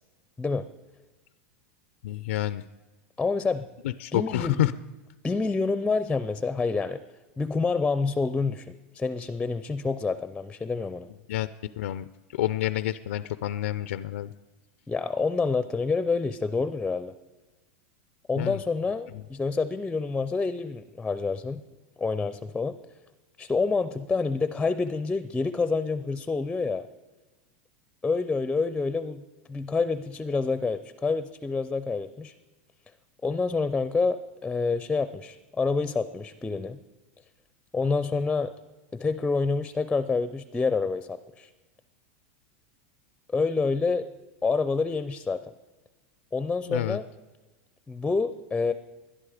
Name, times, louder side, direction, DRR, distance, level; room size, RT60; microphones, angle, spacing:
voice 1, 2.0-2.7 3.8-4.7 11.3-11.5 11.8-12.0 12.3-14.3 18.4-18.6 19.1-19.2 46.7-47.0, left 14 dB, 90° left, 14 dB, 0.5 m, -28 dB
voice 2, 3.2-3.7 4.1-4.7 5.2-7.0 7.4-11.1 14.9-17.1 18.3-21.6 22.0-22.8 23.4-26.9 28.0-29.2 29.5-32.3 33.2-36.8 37.7-38.5 38.9-41.5 43.3-44.1 44.4-45.5 46.3-47.0 47.9-48.7, left 4 dB, 10° left, 13 dB, 0.5 m, -27 dB
21.0 x 12.0 x 5.0 m, 1.2 s
supercardioid pair, 150°, 7 cm